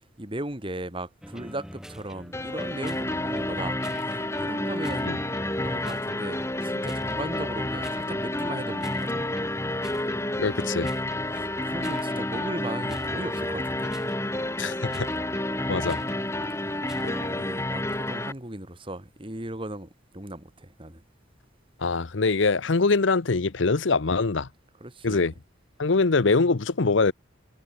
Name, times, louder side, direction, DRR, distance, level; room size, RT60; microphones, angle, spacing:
voice 1, 0.2-5.3 5.6-9.3 11.3-13.9 16.9-21.0 24.8-25.3, right 1 dB, 25° right, 2.5 m, -37 dB
sound 1, 1.2-17.3, equal, 5° right, 4.0 m, -43 dB
sound 2, 2.3-18.3, left 1 dB, 15° left, 1.7 m, -30 dB
voice 2, 10.4-10.9 14.6-15.1 15.7-16.0 17.0-17.1 21.8-24.5 25.0-25.3 25.8-27.1, left 3 dB, 70° left, 0.8 m, -23 dB
head